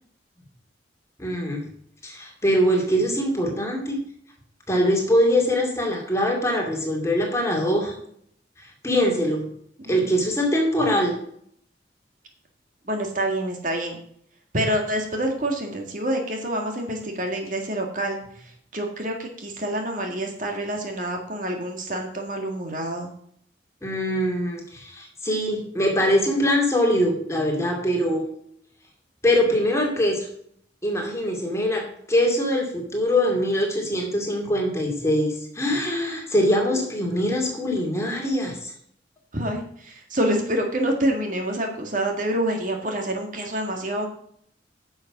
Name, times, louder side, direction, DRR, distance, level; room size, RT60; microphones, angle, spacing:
voice 1, 1.2-1.7 2.0-4.0 4.7-7.9 8.8-9.5 9.9-11.2 23.8-28.3 29.2-30.3 30.8-38.7, equal, 15° left, 0 dB, 2.4 m, -23 dB
voice 2, 12.9-14.0 14.5-23.1 36.7-36.8 39.3-44.1, right 1 dB, 45° right, 2 dB, 1.9 m, -27 dB
10.0 x 6.5 x 6.0 m, 0.66 s
head